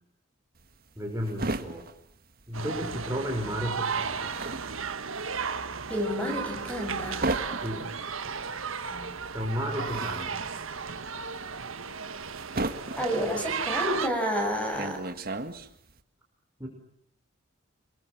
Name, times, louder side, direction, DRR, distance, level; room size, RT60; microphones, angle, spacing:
sound 1, 0.6-3.1 3.4-16.0, right 2 dB, 45° right, 1.8 m, -36 dB
voice 1, 1.0-1.9 2.5-4.3 7.6-8.1 8.9-9.1 9.3-10.6 16.6-16.7, equal, 15° right, 0 dB, 5.4 m, -33 dB
sound 2, 2.5-14.1, right 5 dB, 75° right, 1.5 m, -34 dB
voice 2, 5.9-7.2 13.0-15.0, equal, 5° left, 3 dB, 7.7 m, -30 dB
29.0 x 23.0 x 7.5 m, 0.68 s
head